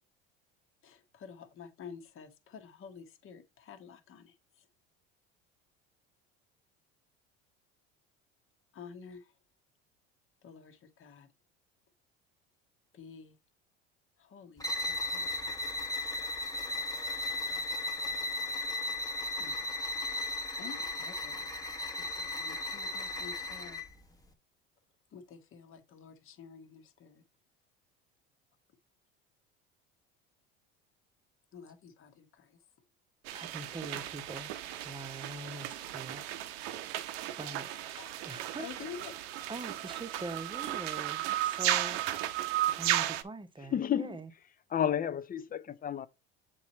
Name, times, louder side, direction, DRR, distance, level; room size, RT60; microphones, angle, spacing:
voice 1, 0.8-4.7 8.7-9.3 10.4-11.3 12.9-13.3 14.2-15.7 18.6-18.8 19.4-19.6 20.2-21.5 21.9-23.9 25.1-27.2 31.5-32.6 37.7-38.1 38.6-39.2, left 6 dB, 45° left, 1.2 m, -50 dB
sound 1, 14.6-23.9, left 2 dB, 10° left, 1.1 m, -35 dB
voice 2, 33.3-36.2 37.4-38.7 39.5-42.0 42.8-44.3, right 2 dB, 15° right, 0.9 m, -43 dB
sound 2, 33.3-43.2, right 13 dB, 75° right, 0.8 m, -35 dB
voice 3, 43.7-44.2 44.7-46.1, left 9 dB, 30° left, 0.5 m, -31 dB
7.1 x 3.1 x 4.2 m
hypercardioid pair, 80°, 30 cm